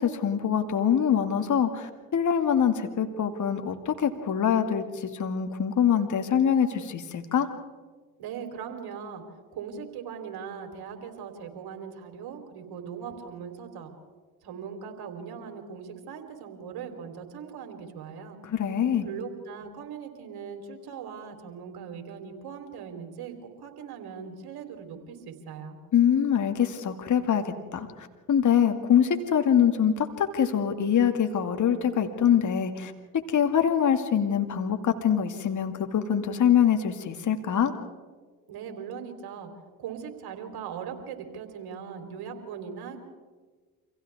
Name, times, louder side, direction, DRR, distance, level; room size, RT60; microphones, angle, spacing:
voice 1, 0.0-4.8 5.1-7.5 18.4-19.1 25.9-27.4 27.7-27.9 28.3-32.9 33.3-37.7, left 8 dB, 40° left, 6 dB, 2.1 m, -24 dB
voice 2, 8.2-9.2 9.5-13.9 14.4-18.4 19.0-25.8 38.5-39.5 39.8-43.1, right 7 dB, 55° right, 5 dB, 3.7 m, -40 dB
29.0 x 26.0 x 3.6 m, 1.4 s
hypercardioid pair, 50°, 44 cm